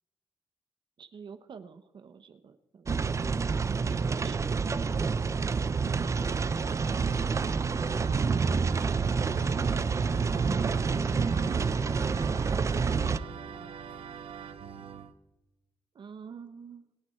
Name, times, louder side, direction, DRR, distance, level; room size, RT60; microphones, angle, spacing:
voice 1, 1.0-5.2 6.0-6.7 15.9-16.9, right 6 dB, 55° right, 10 dB, 1.1 m, -47 dB
sound 1, 2.9-13.2, right 5 dB, 30° right, 0.5 m, -28 dB
Organ, 6.0-15.1, right 6 dB, 80° right, 1.2 m, -43 dB
voice 2, 7.6-8.4 10.1-14.2, left 3 dB, 70° left, -1 dB, 3.4 m, -54 dB
27.0 x 9.6 x 4.5 m, 0.96 s
wide cardioid pair, 170°, 10 cm